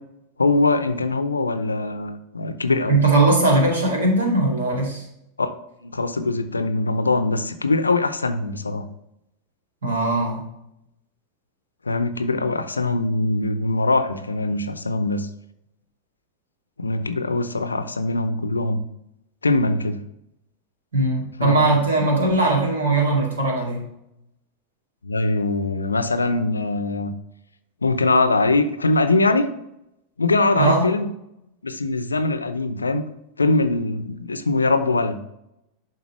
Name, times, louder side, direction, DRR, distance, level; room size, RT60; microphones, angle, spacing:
voice 1, 0.4-3.0 5.4-5.5 5.8-8.9 11.9-15.3 16.8-18.8 19.4-20.0 21.4-21.8 25.0-27.1 27.8-29.5 30.2-31.1 31.6-33.1 33.4-35.3, left 2 dB, 80° left, 10 dB, 0.6 m, -22 dB
voice 2, 2.9-5.1 9.8-10.4 20.9-23.8 30.5-30.9, right 2 dB, 65° right, -1 dB, 2.4 m, -19 dB
11.0 x 4.0 x 3.1 m, 0.83 s
figure-of-eight pair, 90°, 0 cm